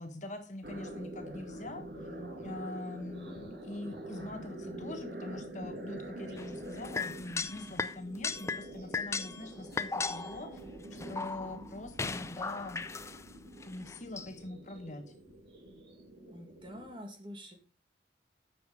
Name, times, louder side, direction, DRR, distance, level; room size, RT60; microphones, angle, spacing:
voice 1, 0.0-2.1 2.4-10.6 10.9-12.9 13.6-15.1, left 2 dB, 45° left, 6 dB, 1.4 m, -43 dB
sound 1, 0.6-17.0, right 1 dB, 65° right, 2.1 m, -46 dB
sound 2, 6.4-7.9 8.2-8.6 8.9-10.5 10.9-11.7 12.0-13.2 13.6-14.3, left 4 dB, 15° left, 0.4 m, -37 dB
voice 2, 16.3-17.6, equal, 30° right, 4 dB, 1.8 m, -46 dB
9.0 x 6.9 x 4.9 m, 0.36 s
head